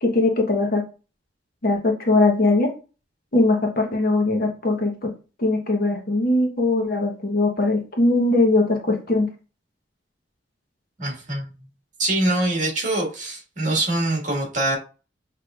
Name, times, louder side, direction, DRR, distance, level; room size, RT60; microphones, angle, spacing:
voice 1, 0.0-0.8 1.6-2.7 3.3-5.1 5.4-9.3, left 2 dB, 50° left, 2 dB, 1.0 m, -20 dB
voice 2, 11.0-11.5 12.0-14.8, right 2 dB, 45° right, 0 dB, 1.7 m, -24 dB
6.2 x 3.2 x 2.4 m, 0.34 s
head